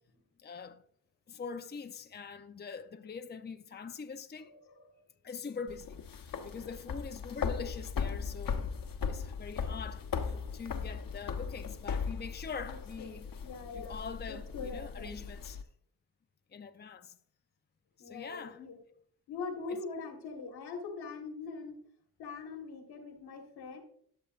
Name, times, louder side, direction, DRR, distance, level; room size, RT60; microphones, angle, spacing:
voice 1, 0.4-0.8 1.3-4.5 5.2-8.7 9.1-13.3 13.7-15.6 16.5-17.2 18.0-18.6 19.7-19.8, left 5 dB, 25° left, 0.7 m, -43 dB
voice 2, 4.4-4.9 10.0-10.2 12.7-15.2 18.0-18.8 19.3-21.8 22.2-23.8, left 4 dB, 80° left, 1.7 m, -43 dB
sound 1, 5.7-15.6, left 6 dB, 60° left, 1.1 m, -38 dB
12.5 x 6.8 x 2.5 m
supercardioid pair, 45°, 38 cm